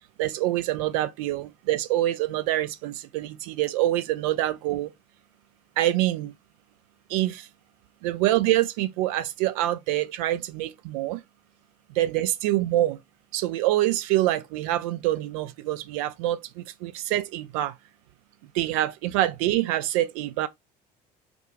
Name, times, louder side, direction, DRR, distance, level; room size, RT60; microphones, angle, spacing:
voice 1, 0.2-4.9 5.8-6.3 7.1-7.5 8.0-11.2 11.9-13.0 13.3-17.7 18.5-20.5, right 14 dB, 55° right, 0.4 m, -26 dB
3.5 x 2.3 x 3.1 m
figure-of-eight pair, 60°, 21 cm